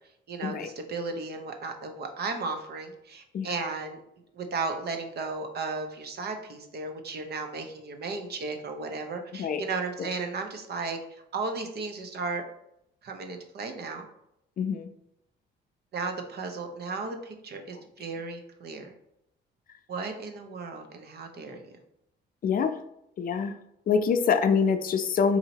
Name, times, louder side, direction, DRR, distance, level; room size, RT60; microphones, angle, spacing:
voice 1, 0.3-4.0 4.3-12.4 13.0-14.1 15.9-18.9 19.9-21.6, right 4 dB, 55° right, 5 dB, 0.7 m, -35 dB
voice 2, 14.6-14.9 22.4-22.7 23.2-23.5 23.9-25.4, left 6 dB, 45° left, 8 dB, 0.5 m, -25 dB
4.1 x 2.8 x 2.8 m, 0.79 s
cardioid pair, 90°, 20 cm